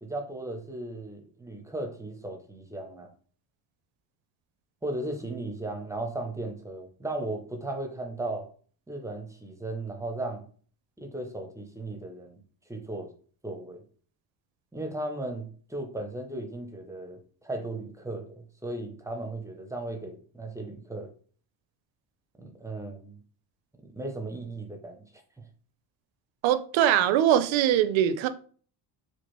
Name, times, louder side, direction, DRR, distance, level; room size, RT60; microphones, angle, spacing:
voice 1, 0.0-3.1 4.8-8.5 8.9-10.5 11.0-12.4 12.7-13.1 13.4-13.8 14.7-21.1 22.4-23.2 23.8-25.0 25.4-25.5, right 2 dB, 5° right, 0.4 m, -36 dB
voice 2, 26.4-28.3, right 11 dB, 70° right, 0.6 m, -22 dB
4.4 x 2.5 x 3.0 m
cardioid pair, 145°, 48 cm